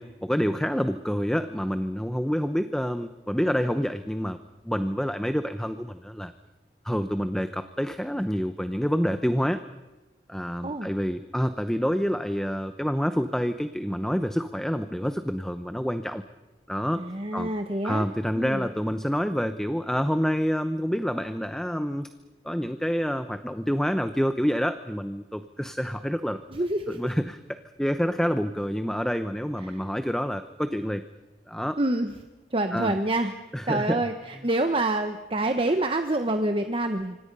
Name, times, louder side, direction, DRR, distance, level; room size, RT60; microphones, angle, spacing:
voice 1, 0.0-4.4 4.6-6.3 6.8-9.6 10.3-16.2 16.7-17.1 17.3-17.5 17.8-22.1 22.4-26.4 26.9-31.0 31.5-31.8 32.7-32.9 33.5-34.0, equal, 5° left, 10 dB, 0.8 m, -27 dB
voice 2, 17.0-18.1 18.3-18.7 26.5-27.1 29.6-29.8 31.8-32.1 32.5-33.3 33.7-37.2, right 2 dB, 30° right, 7 dB, 1.2 m, -27 dB
26.0 x 26.0 x 5.5 m, 1.1 s
head